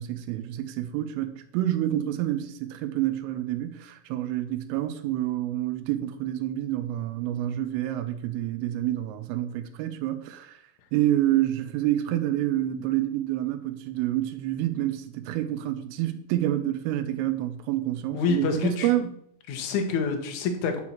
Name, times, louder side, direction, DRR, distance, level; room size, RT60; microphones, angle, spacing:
voice 1, 0.0-10.6 10.9-19.1, right 13 dB, 90° right, 3.4 m, -28 dB
voice 2, 18.1-18.9 19.5-20.8, left 4 dB, 65° left, 1.9 m, -27 dB
10.5 x 4.7 x 7.1 m
omnidirectional pair, 5.7 m